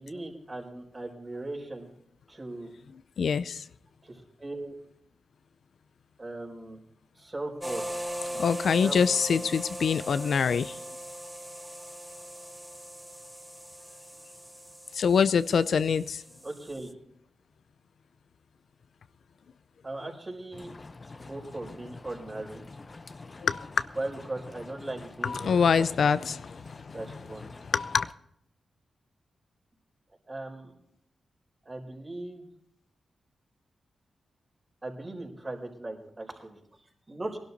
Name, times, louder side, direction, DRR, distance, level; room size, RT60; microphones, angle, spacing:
voice 1, 0.0-1.9 2.3-2.7 4.0-4.7 6.2-6.8 7.2-7.9 8.7-9.0 9.3-9.5 16.4-16.9 19.8-20.7 21.2-22.7 24.0-26.1 26.9-27.5 30.3-30.7 31.6-32.5 34.8-36.6 37.1-37.4, right 2 dB, 35° right, 4.5 m, -38 dB
voice 2, 3.2-3.6 8.3-10.8 14.9-16.2 23.4-23.7 25.2-26.4 26.8-26.9 27.7-28.1, left 6 dB, 75° left, 0.5 m, -25 dB
sound 1, 7.6-16.9, equal, 10° right, 0.7 m, -40 dB
sound 2, 20.5-28.1, left 3 dB, 40° left, 0.8 m, -47 dB
19.5 x 12.0 x 4.1 m
supercardioid pair, 45°, 0 cm